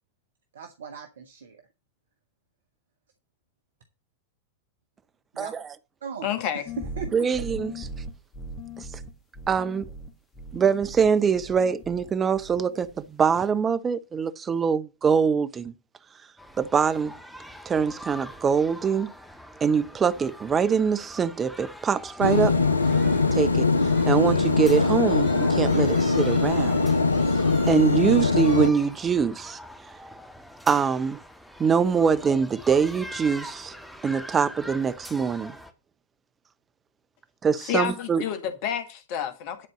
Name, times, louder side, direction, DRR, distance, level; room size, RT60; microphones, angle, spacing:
voice 1, 0.5-1.6 5.3-5.5 6.0-6.3 6.8-7.3, right 6 dB, 65° right, 1.2 m, -38 dB
voice 2, 6.2-6.6 37.6-39.7, left 9 dB, 45° left, 1.6 m, -29 dB
sound 1, 6.7-12.1 12.4-13.1, equal, 30° left, 1.9 m, -39 dB
voice 3, 7.1-7.9 8.8-8.9 9.5-9.9 10.5-15.7 16.6-17.1 17.6-19.1 19.6-22.5 23.3-23.7 24.1-26.8 27.7-29.6 30.7-31.2 31.6-33.7 34.0-35.6 37.4-38.2, right 6 dB, 20° right, 0.8 m, -23 dB
sound 2, 16.4-35.7, equal, ahead, 1.5 m, -44 dB
sound 3, 22.2-28.7, left 3 dB, 80° left, 0.7 m, -22 dB
11.0 x 4.5 x 7.6 m
figure-of-eight pair, 90°, 0 cm